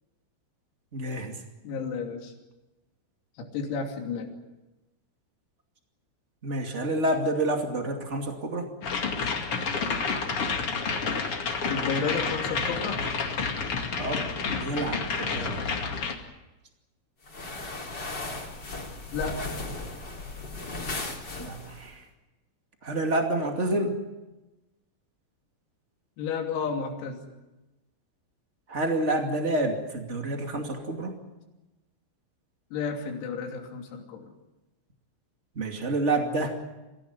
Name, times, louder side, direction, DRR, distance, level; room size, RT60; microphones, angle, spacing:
voice 1, 0.9-1.4 6.4-8.7 14.0-14.3 14.6-15.6 21.4-22.1 22.8-24.0 28.7-31.2 35.5-36.5, right 2 dB, 55° right, 3 dB, 0.7 m, -28 dB
voice 2, 1.6-2.3 3.4-4.3 11.7-13.0 19.1-19.6 26.2-27.2 32.7-34.3, left 5 dB, 85° left, 2 dB, 5.6 m, -32 dB
sound 1, 8.8-16.1, left 5 dB, 45° left, 1.9 m, -29 dB
sound 2, 17.2-21.9, left 2 dB, 25° left, 3.3 m, -36 dB
26.0 x 16.5 x 9.7 m, 1.0 s
omnidirectional pair, 6.0 m